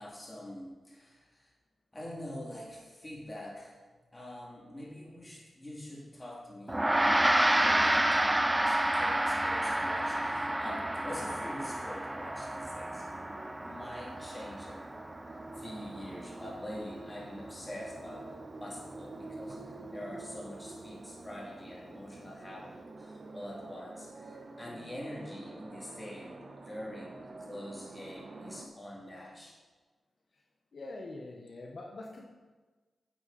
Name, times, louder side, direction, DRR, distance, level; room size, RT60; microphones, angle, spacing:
voice 1, 0.0-1.5 1.9-3.8 4.1-14.9 15.6-29.6, left 1 dB, 20° left, -3 dB, 2.9 m, -45 dB
Gong, 6.7-16.3, right 1 dB, 15° right, 0.4 m, -29 dB
sound 1, 9.6-28.7, right 2 dB, 55° right, 1.0 m, -48 dB
voice 2, 30.7-32.3, left 2 dB, 60° left, 0 dB, 1.2 m, -44 dB
11.0 x 7.8 x 4.3 m, 1.3 s
cardioid pair, 65°, 0 cm